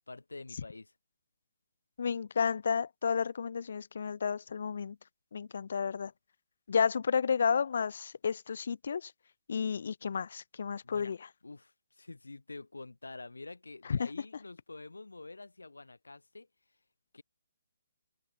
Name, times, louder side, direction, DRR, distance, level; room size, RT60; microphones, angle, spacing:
voice 1, 0.1-0.9 10.8-11.1 11.4-16.5 17.1-17.2, left 3 dB, 80° left, 1.1 m, -47 dB
voice 2, 2.0-5.0 5.3-6.1 6.7-9.1 9.5-11.3 13.9-14.1, left 6 dB, 60° left, 0.4 m, -31 dB
open air
figure-of-eight pair, 140°, 0 cm